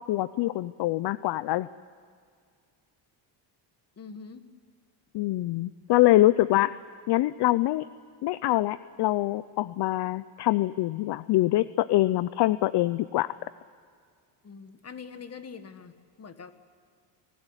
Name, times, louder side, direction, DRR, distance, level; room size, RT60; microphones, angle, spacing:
voice 1, 0.0-1.7 5.1-6.8 7.1-7.8 8.2-13.3, left 16 dB, 55° left, 17 dB, 0.6 m, -24 dB
voice 2, 4.0-4.5 14.4-16.5, left 5 dB, 30° left, 10 dB, 1.8 m, -44 dB
25.5 x 18.5 x 9.8 m, 2.1 s
cardioid pair, 105°, 48 cm